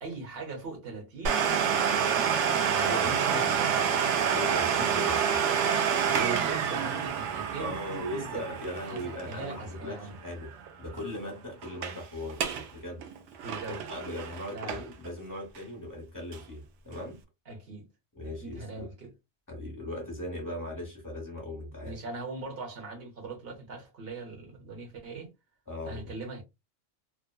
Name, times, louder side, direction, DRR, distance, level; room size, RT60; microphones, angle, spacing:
voice 1, 0.0-4.2 6.1-8.5 8.9-10.2 13.4-13.9 14.5-14.8 17.5-17.9 18.4-19.1 21.8-25.3 25.8-26.4, right 3 dB, 60° right, 1.1 m, -40 dB
Domestic sounds home sounds, 1.2-10.7 10.9-11.0 11.6-12.0 12.3-12.7 13.0-15.1 15.5-15.6 16.3-16.4, right 7 dB, 85° right, 0.9 m, -28 dB
voice 2, 2.8-3.6 4.3-6.2 7.6-10.5 10.8-12.4 12.7-13.0 13.7-17.2 18.1-18.9 19.5-22.0 25.7-26.1, left 1 dB, 20° left, 0.8 m, -39 dB
2.7 x 2.1 x 2.2 m
omnidirectional pair, 1.2 m